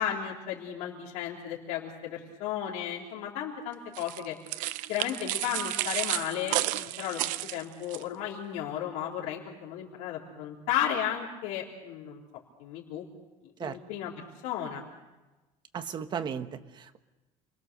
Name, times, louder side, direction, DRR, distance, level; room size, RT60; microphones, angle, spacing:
voice 1, 0.0-4.4 4.9-7.2 7.5-12.2 12.6-13.0 13.6-14.1 14.4-14.8, left 10 dB, 85° left, -3 dB, 3.6 m, -34 dB
sound 1, 4.0-8.0, right 16 dB, 75° right, 0.7 m, -32 dB
voice 2, 15.7-17.0, right 7 dB, 35° right, 8 dB, 1.4 m, -35 dB
29.0 x 23.0 x 6.8 m, 1.1 s
cardioid pair, 150°, 14 cm